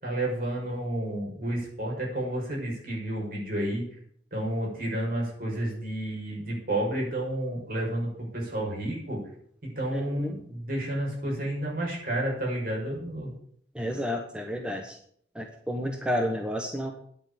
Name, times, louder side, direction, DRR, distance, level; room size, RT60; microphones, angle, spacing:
voice 1, 0.0-3.8 4.3-9.2 9.6-13.3, right 1 dB, 55° right, -3 dB, 6.5 m, -31 dB
voice 2, 9.9-10.3 13.7-14.9 15.4-16.9, equal, 5° right, 3 dB, 1.2 m, -31 dB
10.0 x 8.7 x 9.1 m, 0.63 s
head